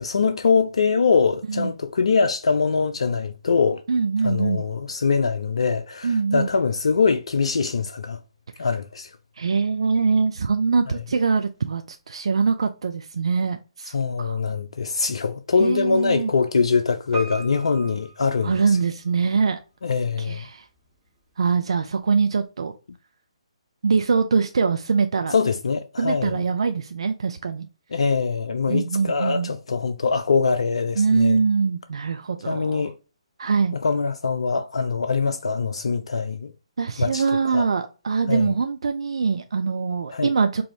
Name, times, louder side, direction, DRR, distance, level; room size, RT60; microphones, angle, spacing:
voice 1, 0.0-3.8 4.2-8.2 8.6-9.2 10.9-11.0 13.9-18.8 19.8-20.5 25.3-26.4 27.9-31.4 32.4-33.0 33.8-36.5 37.0-37.2 37.5-37.7 38.3-38.5 40.1-40.3, left 5 dB, 65° left, 0.3 m, -23 dB
voice 2, 3.9-4.6 6.0-6.5 9.4-14.4 15.6-16.3 18.4-19.6 20.2-20.7 21.4-22.7 23.8-25.3 26.0-27.7 28.7-29.5 31.0-32.9 33.4-33.8 36.8-40.6, right 5 dB, 60° right, 0.4 m, -23 dB
Piano, 17.1-19.2 19.4-19.5, right 3 dB, 15° right, 1.4 m, -38 dB
4.7 x 2.6 x 2.8 m
figure-of-eight pair, 135°, 3 cm